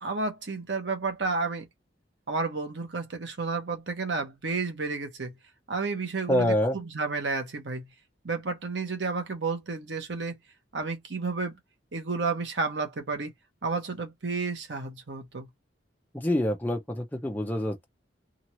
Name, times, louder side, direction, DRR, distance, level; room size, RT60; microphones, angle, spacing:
voice 1, 0.0-1.7 2.3-5.3 5.7-7.9 8.2-10.4 10.7-11.5 11.9-13.3 13.6-15.5, right 4 dB, 70° right, 1.0 m, -31 dB
voice 2, 6.3-6.8 16.1-17.8, left 1 dB, 10° left, 0.7 m, -26 dB
2.9 x 2.6 x 3.0 m
head